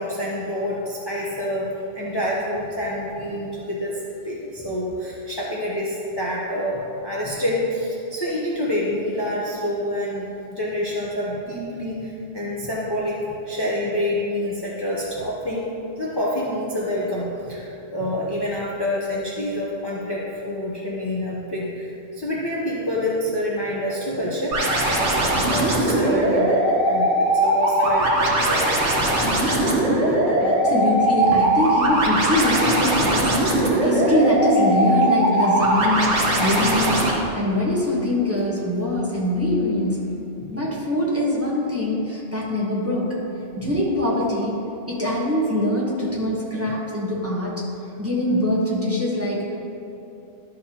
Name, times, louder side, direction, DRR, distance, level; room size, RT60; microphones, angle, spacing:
voice 1, 0.0-1.7 1.9-15.7 16.0-26.5 26.8-28.7 29.0-29.1 29.5-29.7 30.1-30.3 40.4-40.6 43.5-43.8, left 1 dB, 25° left, -6 dB, 0.9 m, -27 dB
sound 1, 24.5-37.1, right 1 dB, 85° right, 1.6 m, -20 dB
voice 2, 30.4-40.1 40.5-43.2 43.6-47.6 48.0-49.6, left 1 dB, 10° right, -6 dB, 1.3 m, -23 dB
12.0 x 6.1 x 3.0 m, 2.8 s
omnidirectional pair, 1.2 m